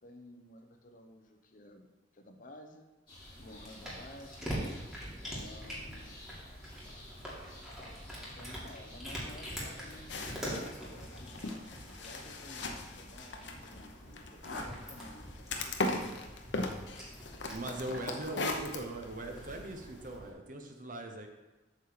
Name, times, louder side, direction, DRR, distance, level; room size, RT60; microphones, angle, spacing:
voice 1, 0.0-2.9 3.4-4.6 5.2-6.2 8.3-11.6 12.0-16.4 18.0-18.4, left 1 dB, 50° left, 5 dB, 0.8 m, -53 dB
sound 1, 3.1-10.4, left 1 dB, 25° left, 3.0 m, -53 dB
Cat, 3.2-20.3, equal, ahead, 2.2 m, -45 dB
sound 2, 10.1-20.1, left 2 dB, 80° left, 0.9 m, -39 dB
voice 2, 17.5-21.3, right 1 dB, 50° right, 4 dB, 1.0 m, -40 dB
8.2 x 4.0 x 6.8 m, 1.1 s
head